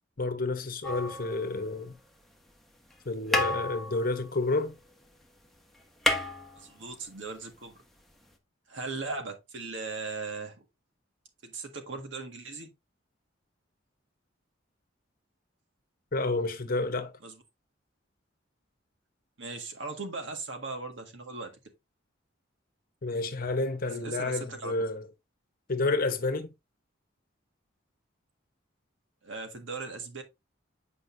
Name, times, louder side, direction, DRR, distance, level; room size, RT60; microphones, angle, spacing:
voice 1, 0.2-1.9 3.0-4.7 16.1-17.1 23.0-25.0 25.7-26.5, left 2 dB, 50° left, 1.0 m, -30 dB
sound 1, 0.8-2.0 2.9-3.0 3.3-5.2 5.4-5.5 5.8-7.1 8.3-8.4, left 1 dB, ahead, 1.1 m, -31 dB
voice 2, 6.6-7.7 8.7-10.6 11.4-12.7 17.2-17.4 19.4-21.5 24.0-24.7 29.2-30.2, right 3 dB, 70° right, 1.7 m, -38 dB
8.2 x 5.2 x 2.6 m
head